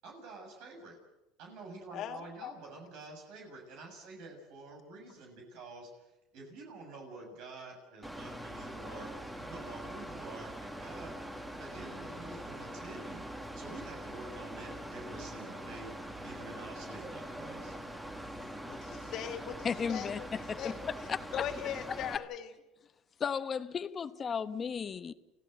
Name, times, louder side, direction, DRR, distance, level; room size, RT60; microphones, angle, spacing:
voice 1, 0.0-1.0 1.4-9.1 9.4-11.1 11.6-17.8, right 3 dB, 65° right, 6.9 m, -48 dB
voice 2, 1.9-2.5 18.3-20.3 20.6-20.8 21.3-22.5, left 10 dB, 50° left, 2.4 m, -40 dB
Mechanical fan, 8.0-22.2, right 1 dB, 10° right, 2.1 m, -43 dB
voice 3, 19.6-20.8 21.1-21.5 22.1-22.2 23.2-25.1, left 6 dB, 30° left, 1.1 m, -35 dB
30.0 x 16.0 x 8.0 m
supercardioid pair, 115°, 0 cm